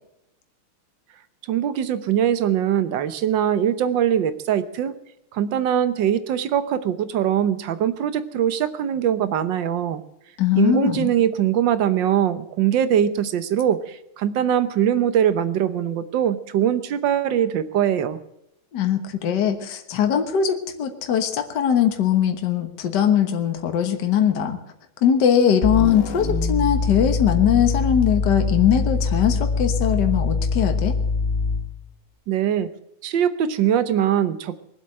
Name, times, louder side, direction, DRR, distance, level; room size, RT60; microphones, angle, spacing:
voice 1, 1.5-4.9 5.3-10.0 10.5-18.2 32.3-32.7 33.0-34.6, right 9 dB, 65° right, 12 dB, 1.5 m, -22 dB
voice 2, 10.4-11.1 18.7-24.6 25.0-31.0, left 9 dB, 55° left, 6 dB, 1.8 m, -21 dB
sound 1, 25.6-31.8, left 4 dB, 35° left, 1.2 m, -23 dB
22.5 x 7.9 x 7.7 m, 0.83 s
omnidirectional pair, 2.3 m